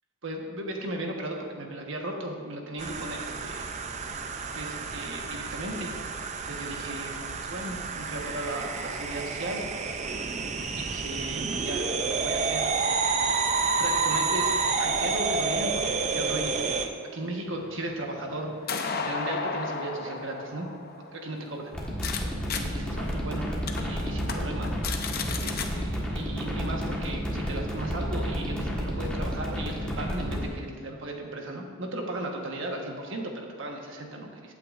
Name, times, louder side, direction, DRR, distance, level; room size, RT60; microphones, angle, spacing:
voice 1, 0.2-3.7 4.5-5.9 6.4-9.6 10.8-12.7 13.8-20.7 21.1-21.7 22.2-23.4 23.8-34.5, right 1 dB, 55° right, 1 dB, 1.3 m, -36 dB
sound 1, 2.8-16.9, right 4 dB, 30° right, 0.4 m, -29 dB
sound 2, 17.5-22.2 22.5-22.6 23.1-23.2 23.7-23.8 24.2-24.3 24.6-25.7, left 5 dB, 45° left, 0.7 m, -34 dB
sound 3, 21.7-30.4, equal, 5° left, 1.4 m, -31 dB
15.5 x 8.7 x 2.5 m, 2.2 s
head